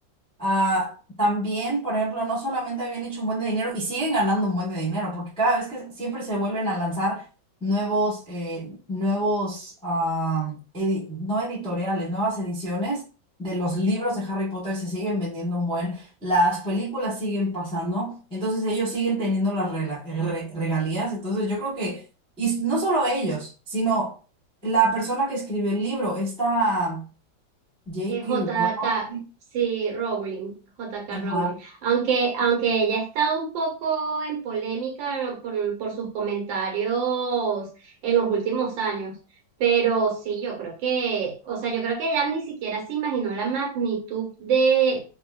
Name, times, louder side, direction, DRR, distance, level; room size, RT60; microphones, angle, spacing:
voice 1, 0.4-7.3 7.6-13.0 13.4-22.0 22.4-24.1 24.6-27.0 27.9-29.2 31.1-31.6, right 1 dB, 5° left, 0.6 m, -26 dB
voice 2, 28.1-29.1 29.5-30.5 30.8-31.5 31.8-39.2 39.6-45.0, right 6 dB, 75° right, 1.5 m, -25 dB
3.6 x 2.1 x 2.3 m
omnidirectional pair, 2.1 m